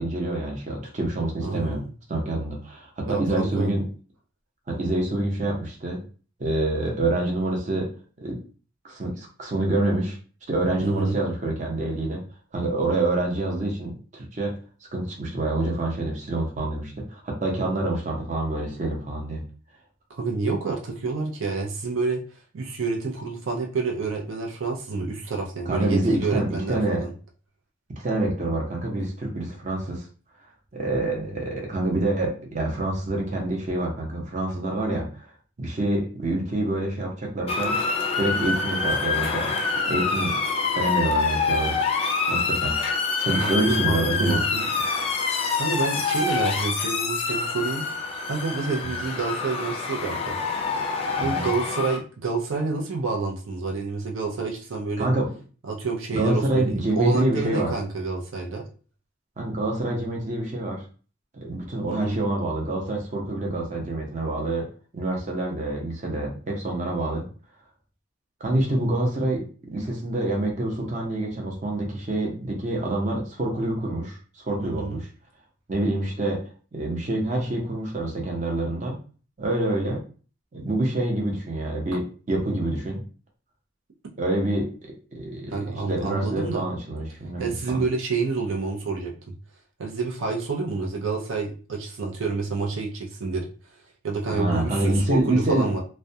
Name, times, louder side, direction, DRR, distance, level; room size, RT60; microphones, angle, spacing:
voice 1, 0.0-1.8 2.1-3.9 4.7-6.0 6.4-7.9 8.2-8.4 8.8-10.2 10.5-12.2 12.5-14.6 14.9-19.4 25.7-27.0 28.0-30.1 30.7-35.3 35.6-37.8 38.2-39.5 39.8-40.4 40.7-41.8 42.3-42.7 43.2-44.4 44.8-45.6 48.8-49.0 51.2-51.5 55.0-55.3 56.1-57.7 59.4-60.8 61.4-64.7 64.9-67.3 68.4-75.1 75.7-79.0 79.4-80.0 80.5-83.0 84.2-84.7 85.1-87.8 94.3-95.7, right 1 dB, 40° right, 0 dB, 0.6 m, -26 dB
voice 2, 1.4-1.8 3.1-3.7 10.8-11.2 20.1-22.2 22.5-27.1 43.4-44.7 45.5-47.9 48.3-50.4 51.2-55.1 55.7-58.7 61.9-62.2 74.6-75.0 85.5-86.7 87.4-89.1 89.8-93.5 94.0-95.8, right 4 dB, 90° right, 0 dB, 0.5 m, -28 dB
Motor vehicle (road) / Siren, 37.5-52.0, left 4 dB, 30° left, 0.3 m, -26 dB
2.2 x 2.1 x 2.7 m, 0.39 s
head